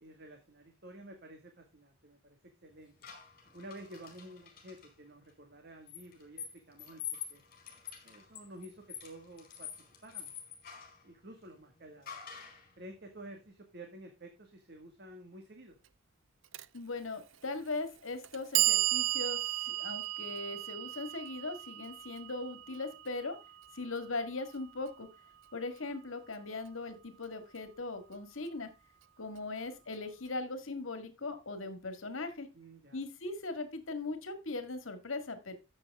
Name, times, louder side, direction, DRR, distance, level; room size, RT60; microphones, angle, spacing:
voice 1, 0.0-2.9 3.5-7.4 8.0-9.7 10.0-10.3 11.0-12.2 12.8-15.8 32.5-33.0, right 1 dB, 55° right, 4 dB, 1.8 m, -51 dB
sound 1, 3.0-4.9 5.9-11.0 12.1-12.7, left 8 dB, 45° left, 4.4 m, -46 dB
Clock, 16.5-16.7 17.6-17.7 18.2-24.3, right 16 dB, 70° right, 0.6 m, -34 dB
voice 2, 16.7-23.4 23.7-25.1 25.5-28.7 29.2-32.5 32.9-35.5, left 3 dB, 75° left, 9 dB, 1.8 m, -39 dB
13.0 x 7.6 x 3.5 m, 0.26 s
head